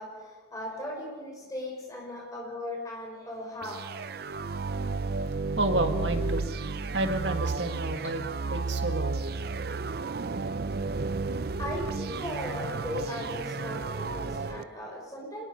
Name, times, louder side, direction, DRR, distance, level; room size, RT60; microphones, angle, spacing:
voice 1, 0.0-4.3 10.7-11.3 11.6-15.5, left 1 dB, 20° left, -1 dB, 5.6 m, -38 dB
sound 1, 3.6-14.6, right 4 dB, 55° right, 0.5 m, -32 dB
voice 2, 5.6-8.2 8.5-9.2, right 1 dB, 70° right, 6 dB, 1.8 m, -31 dB
25.5 x 20.5 x 5.3 m, 1.5 s
head